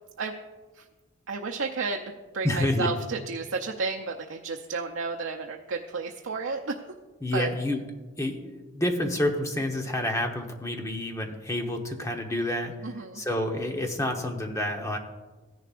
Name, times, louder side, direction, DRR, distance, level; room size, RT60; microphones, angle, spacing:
voice 1, 1.3-6.8 7.3-7.5 12.8-13.2, right 4 dB, 75° right, 1 dB, 0.6 m, -32 dB
voice 2, 2.4-2.9 7.2-7.8 8.2-12.7 13.1-15.0, left 1 dB, 15° left, 3 dB, 1.0 m, -28 dB
15.5 x 10.5 x 2.5 m, 1.2 s
head